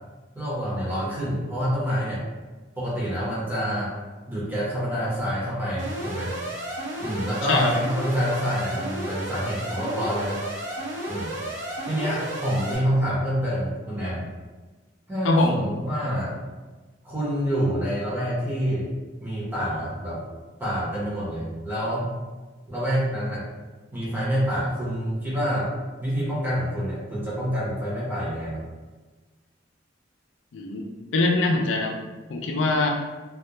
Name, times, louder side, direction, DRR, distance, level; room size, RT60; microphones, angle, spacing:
voice 1, 0.3-2.2 2.8-3.9 4.3-6.3 7.0-10.4 11.1-11.3 11.8-14.2 15.1-16.4 17.0-18.9 19.2-20.2 20.6-22.2 22.7-23.5 23.9-25.7 26.0-28.6, equal, 10° right, -8 dB, 0.8 m, -27 dB
Alarm, 5.8-12.8, right 1 dB, 75° right, 0.8 m, -33 dB
voice 2, 15.2-15.6 30.5-30.9 31.1-31.9 32.3-32.9, left 2 dB, 80° left, 2 dB, 0.4 m, -22 dB
2.3 x 2.2 x 2.8 m, 1.3 s
head